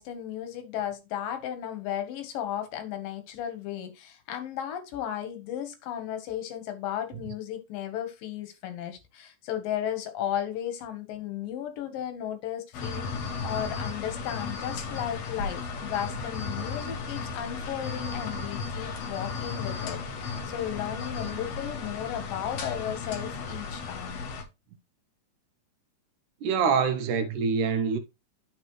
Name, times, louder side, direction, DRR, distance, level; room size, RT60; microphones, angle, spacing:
voice 1, 0.0-24.2, left 10 dB, 90° left, 2.9 m, -35 dB
sound 1, 12.7-24.4, left 4 dB, 60° left, 2.2 m, -35 dB
voice 2, 26.4-28.0, right 6 dB, 75° right, 2.2 m, -25 dB
12.5 x 4.2 x 3.1 m
omnidirectional pair, 3.8 m